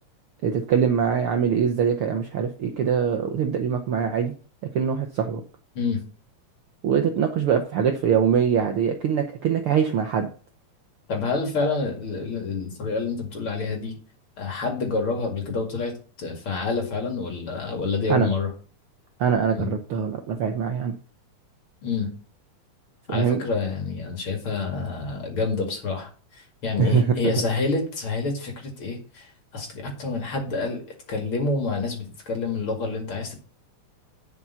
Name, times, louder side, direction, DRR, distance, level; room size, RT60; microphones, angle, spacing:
voice 1, 0.4-4.3 4.7-5.4 6.8-10.3 18.1-18.3 19.2-20.9 23.1-23.4 26.8-27.3, right 7 dB, 65° right, 5 dB, 1.4 m, -23 dB
voice 2, 11.1-13.9 14.4-18.5 19.6-19.7 21.8-22.1 23.1-30.8 31.1-33.4, left 4 dB, 45° left, 2 dB, 2.7 m, -28 dB
11.0 x 5.5 x 5.7 m, 0.39 s
omnidirectional pair, 3.4 m